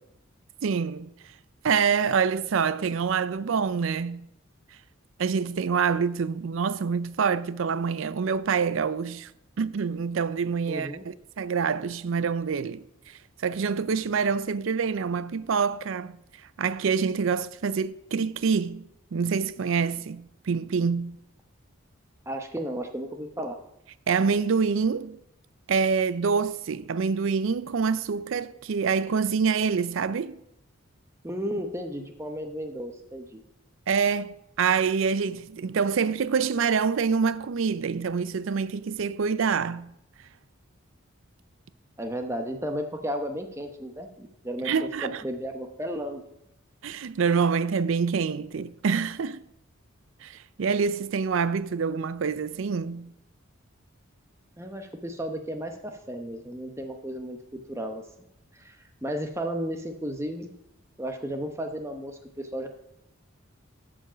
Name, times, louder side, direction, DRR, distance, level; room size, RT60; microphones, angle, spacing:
voice 1, 0.6-1.1 1.6-4.3 5.2-9.3 9.6-16.2 16.6-21.2 24.1-25.2 25.7-30.4 33.9-39.9 44.6-45.2 46.8-49.4 50.2-53.1, right 5 dB, 70° right, 0.4 m, -26 dB
voice 2, 10.7-11.0 22.3-23.6 31.2-33.4 42.0-46.2 54.6-58.0 58.5-60.5 61.0-62.7, equal, 15° right, 0.9 m, -34 dB
13.0 x 5.0 x 5.0 m
head